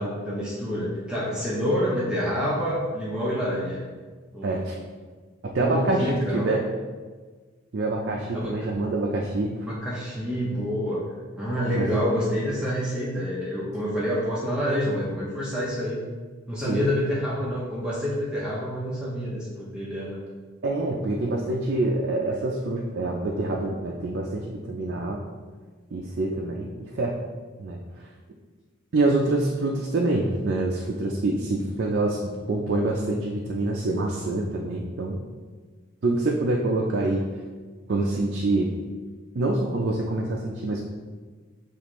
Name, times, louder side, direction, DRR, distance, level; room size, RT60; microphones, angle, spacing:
voice 1, 0.0-3.8 4.3-4.7 5.6-6.5 8.3-8.5 9.7-11.0 11.4-16.0 16.5-20.2, equal, 5° right, -7 dB, 0.6 m, -27 dB
voice 2, 4.4-4.7 5.4-6.1 6.3-6.6 7.7-9.5 11.7-12.0 16.7-16.9 20.6-25.2 25.9-27.1 27.6-27.8 28.9-35.2 36.0-37.2 37.9-38.7 39.4-40.8, right 2 dB, 50° right, -1 dB, 0.4 m, -26 dB
6.8 x 2.5 x 3.0 m, 1.4 s
head